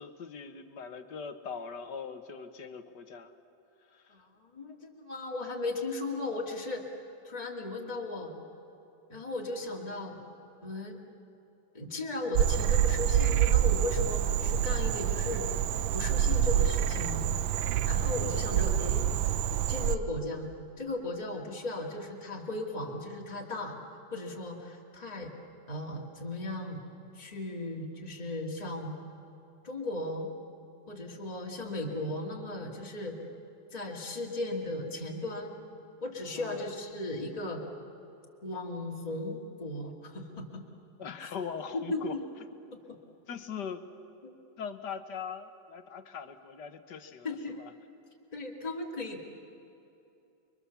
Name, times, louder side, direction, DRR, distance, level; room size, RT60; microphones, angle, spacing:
voice 1, 0.0-3.3 3.9-4.1 18.2-18.4 36.3-36.7 41.0-42.2 43.3-43.8 44.6-47.7, left 6 dB, 60° left, 8 dB, 1.7 m, -41 dB
voice 2, 4.1-8.3 9.1-10.2 10.6-11.0 11.7-15.5 15.9-17.2 17.8-19.1 19.7-20.5 20.8-23.8 24.1-25.3 25.7-26.8 27.1-29.0 29.6-30.3 30.9-33.2 33.7-35.5 36.0-37.6 38.4-40.6 41.2-41.3 41.7-42.2 42.7-43.0 44.2-44.4 47.2-47.6 48.3-49.2, left 2 dB, 20° left, -1 dB, 2.3 m, -36 dB
Frog, 12.3-20.0, right 10 dB, 70° right, 1.4 m, -27 dB
28.5 x 23.5 x 7.1 m, 2.8 s
omnidirectional pair, 2.2 m